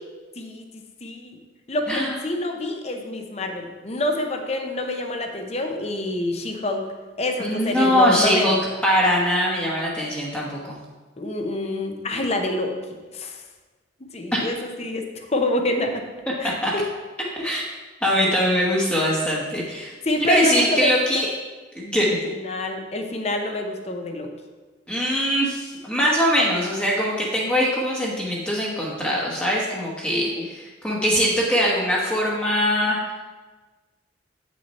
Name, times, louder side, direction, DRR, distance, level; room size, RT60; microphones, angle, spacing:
voice 1, 0.4-1.4 1.7-6.9 7.2-8.5 11.2-13.4 14.1-16.0 16.4-16.9 20.0-20.9 22.2-24.3 30.1-30.4, left 1 dB, 35° left, 4 dB, 0.8 m, -27 dB
voice 2, 7.4-8.6 8.8-10.8 14.3-14.4 16.6-16.7 17.3-17.6 18.0-19.9 20.3-21.3 21.7-22.2 24.9-33.0, equal, 5° left, -5 dB, 1.1 m, -22 dB
8.6 x 6.2 x 4.2 m, 1.3 s
head